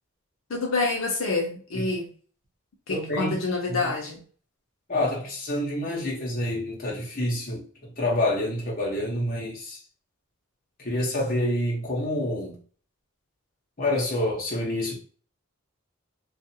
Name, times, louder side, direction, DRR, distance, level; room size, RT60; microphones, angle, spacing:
voice 1, 0.5-2.1 2.9-4.2, left 3 dB, 80° left, 0.6 m, -27 dB
voice 2, 2.9-3.4 3.7-3.9 4.9-9.8 10.8-12.6 13.8-15.0, left 1 dB, 45° left, 1.0 m, -27 dB
2.7 x 2.4 x 2.7 m
head